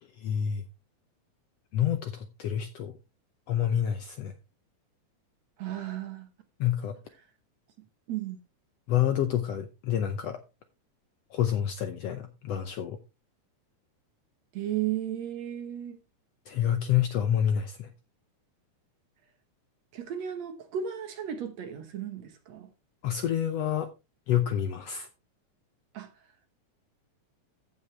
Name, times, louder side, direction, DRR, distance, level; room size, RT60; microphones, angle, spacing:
voice 1, 0.2-0.6 1.7-2.9 3.5-4.3 6.6-6.9 8.9-10.4 11.3-13.0 16.5-17.9 23.0-23.9 24.3-25.1, left 10 dB, 75° left, 1.5 m, -28 dB
voice 2, 5.6-6.3 8.1-8.4 14.5-16.0 19.9-22.7 25.9-26.1, right 10 dB, 65° right, 2.2 m, -34 dB
15.0 x 5.6 x 3.2 m
omnidirectional pair, 3.7 m